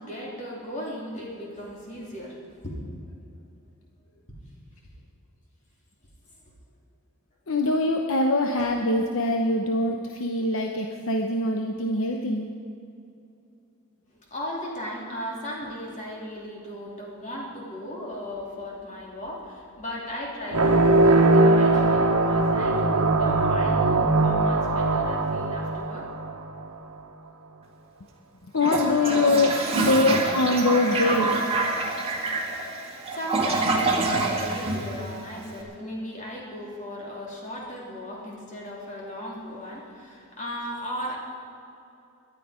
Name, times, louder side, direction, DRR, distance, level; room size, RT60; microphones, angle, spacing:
voice 1, 0.0-2.8 8.6-8.7 14.3-26.1 33.1-41.2, equal, 35° left, -3 dB, 3.4 m, -36 dB
voice 2, 7.5-12.5 28.5-31.9, left 2 dB, 60° left, 2 dB, 0.9 m, -24 dB
sound 1, 20.5-26.7, right 2 dB, 80° right, 1.2 m, -21 dB
Toilet flush, 28.6-35.5, right 3 dB, 25° right, 1.9 m, -26 dB
18.5 x 12.0 x 5.1 m, 2.6 s
head